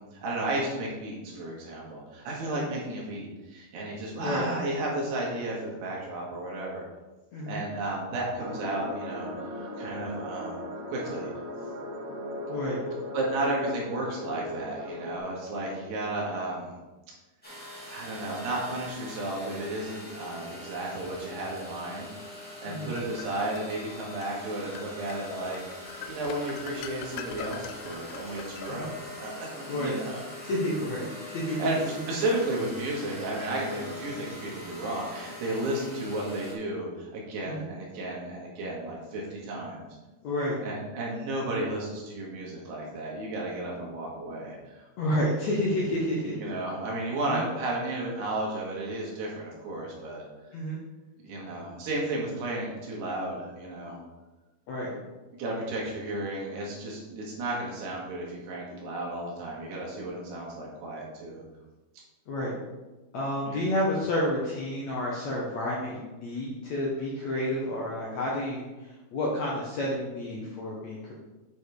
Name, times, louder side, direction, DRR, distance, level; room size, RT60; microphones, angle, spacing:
voice 1, 0.0-6.8 7.5-9.3 9.6-10.6 10.9-11.3 13.1-16.8 17.9-22.1 22.6-25.6 25.9-30.2 31.5-31.8 32.1-39.9 40.6-44.8 46.3-50.3 51.2-54.0 55.4-61.4 63.4-63.6, right 1 dB, 80° right, -3 dB, 4.0 m, -33 dB
sound 1, 8.4-15.2, left 1 dB, 60° right, 2.5 m, -38 dB
voice 2, 12.5-12.8 22.7-22.9 28.7-28.9 29.7-30.0 30.4-31.8 37.5-37.7 40.2-40.6 45.0-46.5 47.3-47.4 50.5-50.8 54.7-54.9 62.3-62.5 63.1-71.1, left 1 dB, 65° left, -4 dB, 1.8 m, -30 dB
sound 2, 17.4-36.5, left 1 dB, 5° left, 1.1 m, -43 dB
sound 3, 22.4-23.7 24.2-24.4 24.8-29.2, left 7 dB, 80° left, 2.5 m, -42 dB
8.6 x 5.4 x 4.8 m, 1.1 s
omnidirectional pair, 4.7 m